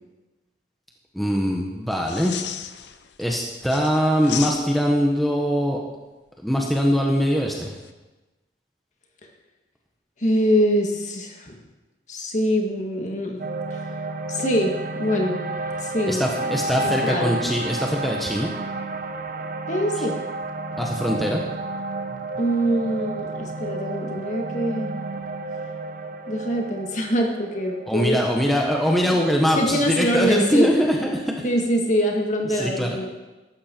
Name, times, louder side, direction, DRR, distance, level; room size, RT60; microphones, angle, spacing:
voice 1, 1.1-2.3 3.2-5.8 6.4-7.7 16.1-18.5 20.8-21.4 27.9-31.4 32.5-33.0, equal, ahead, -1 dB, 1.3 m, -22 dB
sound 1, 2.0-3.2 3.6-5.0 7.5-7.9, left 10 dB, 75° left, 0.7 m, -34 dB
voice 2, 10.2-11.6 12.1-13.4 13.7-13.9 14.3-15.4 15.8-16.6 16.8-17.4 19.7-20.2 22.4-24.9 26.3-29.2 29.6-30.7 31.4-33.0, equal, 40° left, 1 dB, 1.9 m, -24 dB
sound 2, 13.4-29.7, right 2 dB, 45° right, 0.9 m, -31 dB
15.0 x 12.5 x 4.6 m, 1.1 s
head